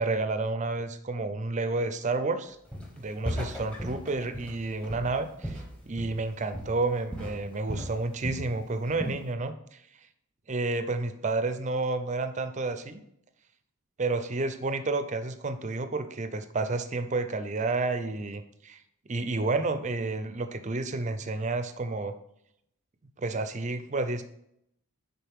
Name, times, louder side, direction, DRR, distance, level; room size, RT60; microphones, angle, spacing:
voice 1, 0.0-2.6 2.9-9.5 10.5-13.0 14.0-18.8 19.1-22.1 23.2-24.2, right 3 dB, 30° right, 10 dB, 0.5 m, -30 dB
Walk footsteps, 2.7-3.0 3.2-6.3 6.5-6.9 7.1-8.5 8.8-9.2, equal, 5° left, 0.9 m, -37 dB
10.0 x 3.9 x 3.6 m, 0.74 s
head